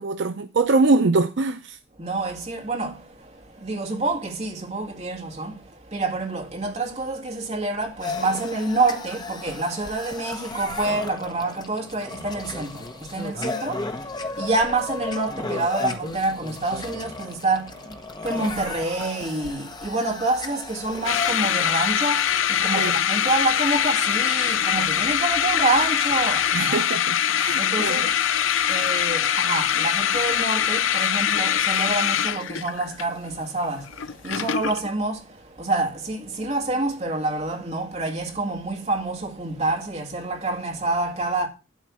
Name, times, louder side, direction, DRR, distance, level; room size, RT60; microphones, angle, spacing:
voice 1, 0.0-1.8 22.7-23.0 26.5-28.1, right 3 dB, 65° right, 0.5 m, -23 dB
voice 2, 2.0-26.8 27.4-41.5, right 2 dB, 35° right, 2.2 m, -27 dB
sound 1, 8.0-21.3, left 3 dB, 20° left, 0.9 m, -34 dB
sound 2, 21.1-34.9, left 9 dB, 75° left, 0.5 m, -23 dB
12.0 x 4.1 x 7.3 m
head